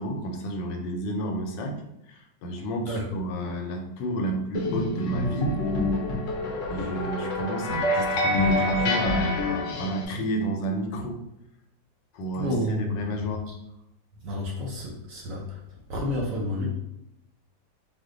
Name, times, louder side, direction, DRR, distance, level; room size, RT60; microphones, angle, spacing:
voice 1, 0.0-1.8 2.1-5.6 6.7-11.2 12.1-13.5, right 1 dB, 85° left, 3 dB, 1.3 m, -30 dB
sound 1, 4.6-10.1, left 1 dB, 60° left, 0.9 m, -27 dB
voice 2, 12.4-13.2 14.2-15.6 15.9-16.7, left 1 dB, 65° right, -2 dB, 0.8 m, -30 dB
2.8 x 2.2 x 3.7 m, 0.85 s
omnidirectional pair, 1.9 m